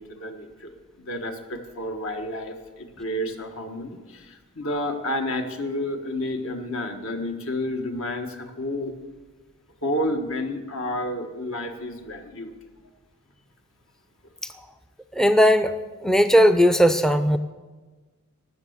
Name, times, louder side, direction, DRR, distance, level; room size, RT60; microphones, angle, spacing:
voice 1, 0.0-8.9 9.8-12.5, left 1 dB, 65° left, 4 dB, 1.6 m, -30 dB
voice 2, 15.2-15.7 16.0-17.4, equal, ahead, 8 dB, 0.5 m, -17 dB
18.5 x 6.8 x 8.1 m, 1.3 s
head